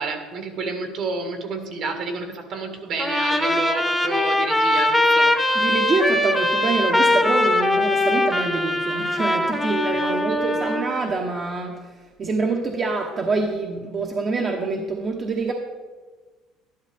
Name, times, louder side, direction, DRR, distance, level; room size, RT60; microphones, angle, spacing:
voice 1, 0.0-5.4 10.0-10.8, right 3 dB, 60° right, 5 dB, 1.8 m, -30 dB
Trumpet, 3.0-10.9, left 1 dB, 5° left, 0.9 m, -21 dB
voice 2, 5.5-15.5, right 3 dB, 35° right, 1 dB, 1.0 m, -26 dB
12.0 x 11.5 x 3.5 m, 1.3 s
cardioid pair, 115°, 0 cm